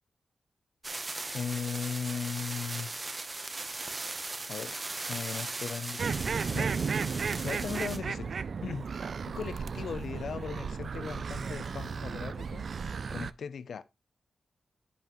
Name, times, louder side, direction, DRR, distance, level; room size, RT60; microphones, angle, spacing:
sound 1, 0.8-8.0, right 2 dB, 25° right, 0.9 m, -38 dB
voice 1, 1.3-2.9 4.5-4.7 5.1-6.7 7.4-8.3 8.6-8.9 9.3-12.7 13.1-13.8, left 6 dB, 70° left, 0.5 m, -38 dB
sound 2, 6.0-13.3, right 5 dB, 50° right, 0.3 m, -34 dB
10.5 x 5.7 x 3.0 m
wide cardioid pair, 160°, 0 cm